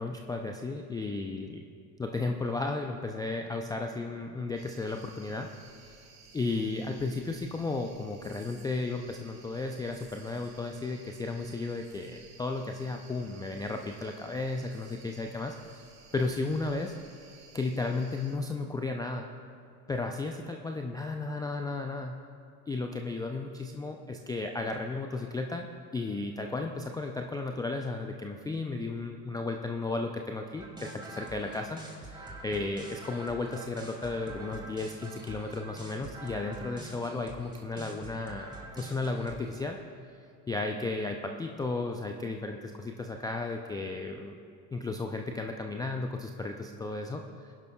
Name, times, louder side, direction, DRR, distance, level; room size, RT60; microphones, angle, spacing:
voice 1, 0.0-1.6 2.0-5.5 6.3-15.6 16.1-16.9 17.5-19.3 19.9-22.2 22.7-25.7 25.9-39.8 40.5-44.4 44.7-47.2, left 3 dB, 10° left, 3 dB, 0.3 m, -34 dB
sound 1, 4.5-18.3, right 4 dB, 75° right, 3.0 m, -56 dB
sound 2, 30.6-39.6, right 2 dB, 10° right, 2.1 m, -45 dB
21.0 x 11.0 x 2.3 m, 2.4 s
hypercardioid pair, 80°, 49 cm